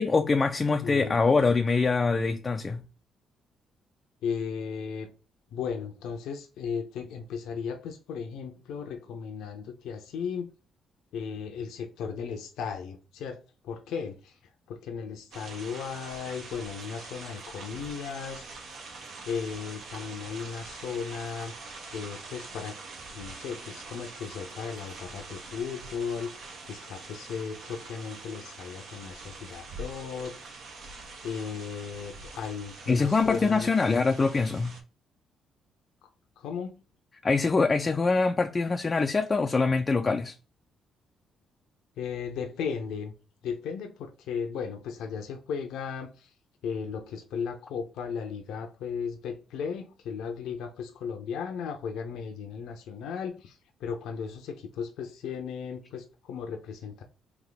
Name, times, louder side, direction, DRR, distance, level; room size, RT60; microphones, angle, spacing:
voice 1, 0.0-2.8 32.9-34.8 37.2-40.4, left 4 dB, 30° left, 0.3 m, -24 dB
voice 2, 0.8-1.2 4.2-5.1 5.5-10.5 11.1-14.4 14.7-18.4 19.3-21.5 21.9-22.8 23.1-30.6 31.2-33.7 36.4-36.8 42.0-43.1 43.4-46.3 46.6-57.0, left 6 dB, 85° left, 0.6 m, -36 dB
sound 1, 15.3-34.8, right 3 dB, 75° right, 1.1 m, -44 dB
3.5 x 2.8 x 3.9 m
cardioid pair, 90°, 0 cm